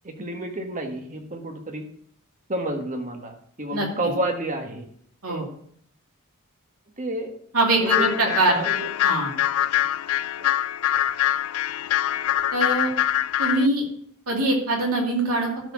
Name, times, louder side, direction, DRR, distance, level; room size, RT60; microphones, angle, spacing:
voice 1, 0.0-1.8 2.5-4.9 5.3-5.5 7.0-7.3 7.8-8.9 10.4-10.5, right 1 dB, 35° right, 3 dB, 1.5 m, -30 dB
voice 2, 7.5-8.6 9.0-9.3 12.5-12.9 13.4-13.8 14.3-15.5, right 2 dB, 70° right, -1 dB, 2.7 m, -22 dB
sound 1, 7.8-13.7, left 12 dB, 70° left, 0.4 m, -24 dB
12.5 x 4.4 x 6.1 m, 0.63 s
head